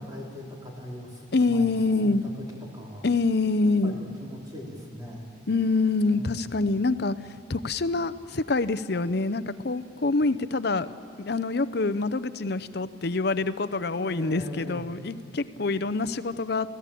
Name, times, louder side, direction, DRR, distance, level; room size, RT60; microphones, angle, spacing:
voice 1, 0.0-3.1 3.8-5.3 6.1-6.7 13.9-14.9, left 1 dB, 20° right, -3 dB, 3.6 m, -40 dB
voice 2, 1.3-2.2 3.0-4.0 5.5-7.1 7.5-16.8, left 3 dB, 55° left, 14 dB, 0.7 m, -26 dB
28.0 x 16.5 x 8.5 m, 2.6 s
head